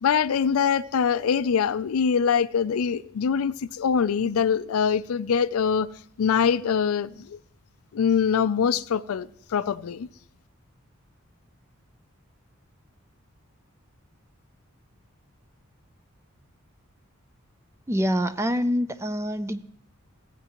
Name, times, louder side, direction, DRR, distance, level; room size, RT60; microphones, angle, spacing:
voice 1, 0.0-5.9 6.2-7.4 7.9-10.1, left 7 dB, 85° left, 0.4 m, -23 dB
voice 2, 17.9-19.6, equal, 15° right, 0.4 m, -25 dB
15.5 x 8.7 x 3.0 m
head